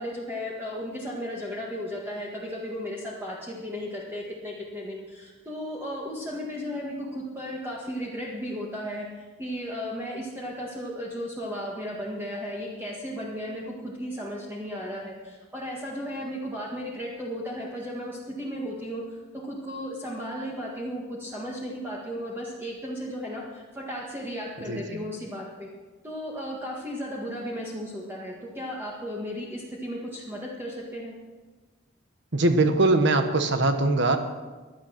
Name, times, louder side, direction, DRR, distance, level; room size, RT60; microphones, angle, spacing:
voice 1, 0.0-25.7 26.0-31.1, equal, 10° right, -4 dB, 1.8 m, -35 dB
voice 2, 24.7-25.0 32.3-34.2, right 2 dB, 60° right, 7 dB, 1.4 m, -22 dB
17.0 x 11.0 x 6.0 m, 1.3 s
head